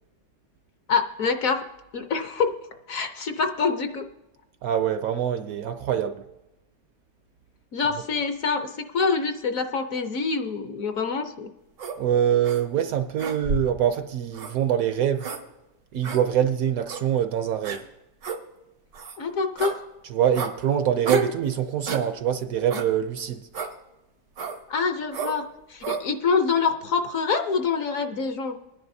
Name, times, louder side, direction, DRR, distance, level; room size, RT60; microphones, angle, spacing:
voice 1, 0.9-1.6 1.9-2.6 2.9-4.1 7.7-11.5 19.2-19.8 24.7-28.6, left 5 dB, 60° left, 1.0 m, -26 dB
voice 2, 4.6-6.2 12.0-15.3 15.9-17.9 20.1-23.5, right 9 dB, 70° right, 0.9 m, -24 dB
sound 1, 11.8-12.0 12.4-12.6 13.2-13.8 14.3-14.5 15.2-15.4 16.0-16.2 16.9-17.0 17.6-17.8 18.2-18.4 18.9-19.2 19.6-19.8 20.3-20.5 21.1-21.4 21.9-22.1 22.7-22.9 23.5-23.7 24.4-24.6 25.1-25.4 25.8-26.0, right 4 dB, 90° right, 1.9 m, -30 dB
21.0 x 10.5 x 2.7 m
omnidirectional pair, 1.8 m